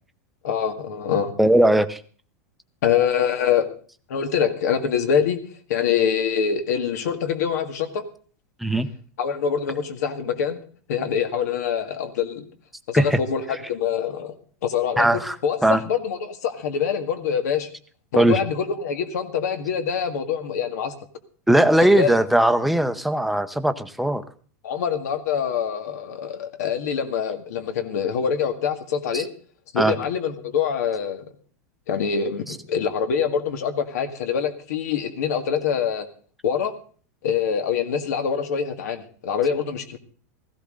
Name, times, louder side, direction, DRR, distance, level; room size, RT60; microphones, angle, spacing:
voice 1, 0.4-1.3 2.8-3.7 4.1-5.4 5.7-8.0 9.2-10.6 10.9-12.5 12.9-14.3 14.6-17.7 18.1-20.9 21.8-22.2 24.6-29.3 29.7-31.2 31.9-36.1 36.4-36.7 37.2-40.0, left 7 dB, 80° left, 8 dB, 2.0 m, -25 dB
voice 2, 1.4-2.0 8.6-8.9 12.9-13.2 15.0-15.4 15.6-15.8 18.2-18.4 21.5-24.2 29.1-29.2 29.8-29.9 32.5-32.6, right 1 dB, ahead, 9 dB, 0.8 m, -19 dB
16.5 x 15.0 x 3.8 m, 0.44 s
supercardioid pair, 155°, 9 cm